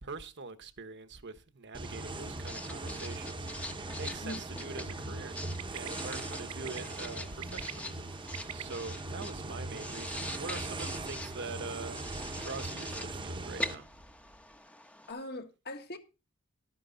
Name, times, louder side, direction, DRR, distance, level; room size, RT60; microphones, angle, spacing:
voice 1, 0.0-3.7 3.9-5.4 5.7-14.0, right 4 dB, 55° right, 1.2 m, -44 dB
sound 1, 1.7-13.8, right 2 dB, 25° right, 1.0 m, -40 dB
Writing, 1.8-15.1, left 2 dB, 5° left, 0.9 m, -44 dB
Bird, 4.6-4.9 5.6-5.9 6.5-6.8 7.3-8.6, right 12 dB, 75° right, 0.5 m, -42 dB
voice 2, 15.1-16.0, left 1 dB, 50° left, 1.7 m, -41 dB
12.5 x 10.0 x 3.9 m
head